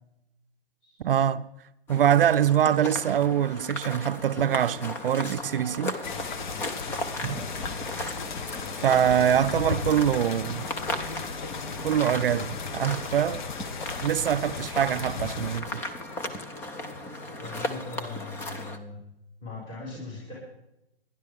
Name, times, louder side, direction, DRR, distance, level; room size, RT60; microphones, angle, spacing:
voice 1, 1.0-1.5 1.9-6.0 7.2-7.4 8.8-10.6 11.8-13.5 14.0-15.8, right 9 dB, 65° right, 0.6 m, -24 dB
sound 1, 1.9-18.8, left 1 dB, 5° left, 0.5 m, -36 dB
sound 2, 6.0-15.6, left 5 dB, 50° left, 1.2 m, -36 dB
voice 2, 7.1-7.6 17.4-19.0 19.4-20.3, left 3 dB, 30° left, 6.3 m, -40 dB
26.5 x 11.0 x 3.6 m
hypercardioid pair, 140°, 30 cm